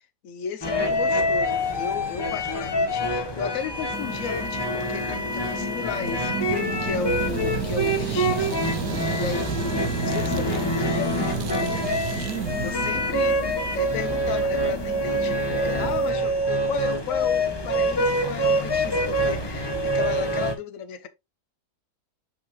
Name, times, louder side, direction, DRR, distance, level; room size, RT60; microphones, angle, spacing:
voice 1, 0.2-8.5 9.1-9.5 10.0-12.0 12.4-21.1, left 7 dB, 60° left, 1.2 m, -34 dB
sound 1, 0.6-20.5, equal, 20° left, 0.8 m, -26 dB
sound 2, 3.9-16.1, left 4 dB, 80° left, 1.5 m, -36 dB
sound 3, 6.0-14.0, right 10 dB, 65° right, 1.0 m, -32 dB
6.9 x 5.6 x 3.0 m
omnidirectional pair, 1.7 m